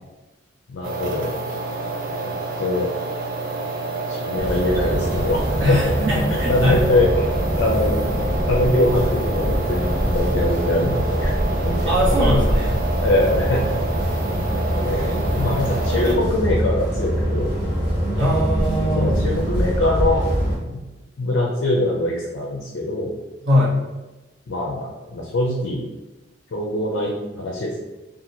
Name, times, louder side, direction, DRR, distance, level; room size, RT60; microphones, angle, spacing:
voice 1, 0.7-1.4 2.2-2.9 4.1-5.8 6.3-7.3 7.6-8.0 8.4-11.3 11.6-12.4 12.9-13.8 14.8-17.6 18.9-20.2 20.7-20.8 21.2-23.1 24.5-25.9 26.5-27.8, left 1 dB, 60° left, -2 dB, 0.4 m, -23 dB
sound 1, 0.8-16.2, right 3 dB, 45° right, 0.5 m, -29 dB
sound 2, 4.4-20.6, equal, 25° right, 1.4 m, -23 dB
sound 3, 5.0-10.8, left 1 dB, 20° left, 1.3 m, -34 dB
voice 2, 5.6-6.8 11.9-12.8 18.2-19.1 23.5-23.9, equal, 60° right, -7 dB, 1.0 m, -21 dB
2.8 x 2.4 x 2.6 m, 1.1 s
head